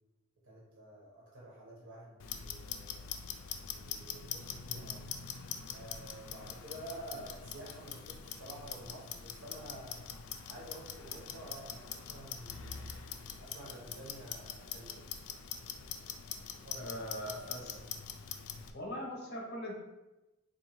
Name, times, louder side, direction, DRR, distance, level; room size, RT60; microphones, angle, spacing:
voice 1, 0.4-3.0 3.7-5.1 5.7-10.0 10.5-12.9 13.4-15.0 16.5-16.9 17.2-17.8, right 1 dB, 90° right, -5 dB, 1.0 m, -50 dB
Clock, 2.2-18.7, left 7 dB, 80° left, 0.4 m, -44 dB
voice 2, 16.8-17.8 18.7-19.7, equal, 55° left, -1 dB, 0.9 m, -41 dB
3.8 x 2.6 x 3.0 m, 1.0 s
head